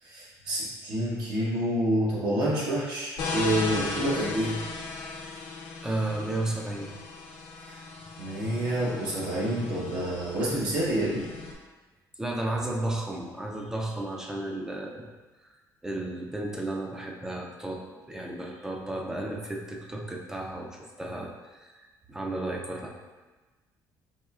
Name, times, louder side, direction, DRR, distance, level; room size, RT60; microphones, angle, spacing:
voice 1, 0.0-4.6 8.2-11.3, right 1 dB, 75° right, -7 dB, 1.1 m, -28 dB
sound 1, 3.2-11.5, left 3 dB, 85° left, 0.8 m, -37 dB
voice 2, 5.8-6.9 12.2-15.0 15.8-17.8 18.1-21.8 22.1-22.9, right 1 dB, 5° right, 0 dB, 0.4 m, -33 dB
4.1 x 3.2 x 2.4 m, 1.3 s
cardioid pair, 165°, 8 cm